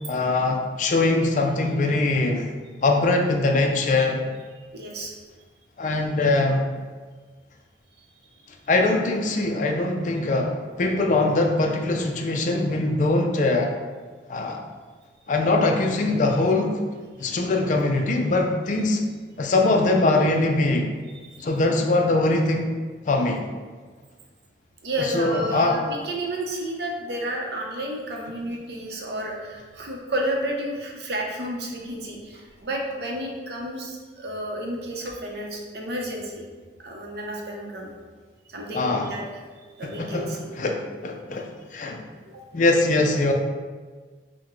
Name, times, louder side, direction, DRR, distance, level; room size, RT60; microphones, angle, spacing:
voice 1, 0.1-2.5 2.8-4.2 5.8-6.7 8.7-13.7 14.3-14.6 15.3-16.8 17.2-19.0 19.4-20.9 21.4-22.7 23.1-23.5 25.0-25.8 38.7-39.1 39.8-42.0 42.5-43.3, left 2 dB, 45° left, 3 dB, 0.4 m, -22 dB
voice 2, 4.7-5.1 21.3-21.4 24.8-36.4 36.8-37.9 38.5-39.2 39.8-40.5 42.3-42.4, right 1 dB, 60° right, -1 dB, 0.7 m, -31 dB
5.8 x 2.2 x 3.0 m, 1.5 s
head